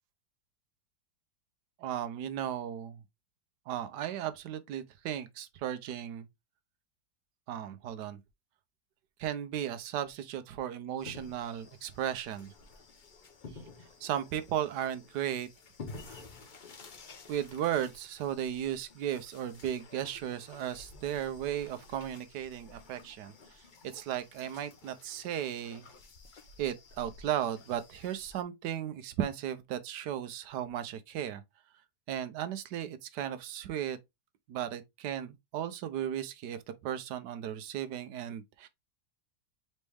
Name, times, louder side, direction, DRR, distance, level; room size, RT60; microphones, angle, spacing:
voice 1, 1.8-3.0 3.7-6.3 7.5-8.2 9.2-12.5 14.0-15.5 16.1-16.2 17.3-23.3 23.8-25.9 26.6-31.4 32.1-34.0 34.5-38.7, right 10 dB, 80° right, 1.3 m, -35 dB
sound 1, 11.0-28.4, left 3 dB, 50° left, 0.6 m, -52 dB
4.4 x 3.1 x 3.3 m
omnidirectional pair, 1.8 m